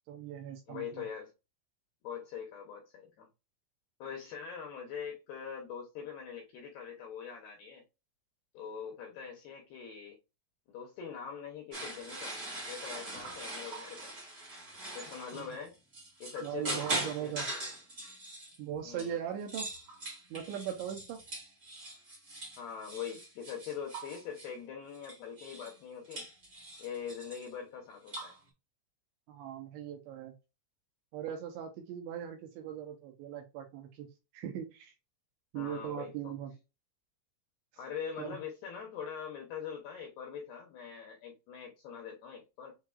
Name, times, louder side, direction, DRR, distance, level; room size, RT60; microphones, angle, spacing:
voice 1, 0.1-1.0 15.3-15.5 16.4-17.5 18.6-19.7 20.3-21.2 29.3-30.3 31.1-34.1 34.3-34.9 35.5-36.5 37.7-37.8 38.2-38.4, right 9 dB, 80° right, 2.7 m, -39 dB
voice 2, 0.7-1.3 2.0-3.3 4.0-7.8 8.5-10.2 10.7-12.4 12.7-14.1 15.0-15.8 16.2-17.3 18.8-19.1 22.6-26.3 26.8-28.3 35.5-36.3 37.8-42.8, left 7 dB, 80° left, 2.3 m, -43 dB
sound 1, 11.7-19.1 19.4-24.5 24.9-25.8 26.0-27.5 28.1-28.4, right 2 dB, 45° right, 1.2 m, -41 dB
7.3 x 3.1 x 2.3 m
omnidirectional pair, 5.8 m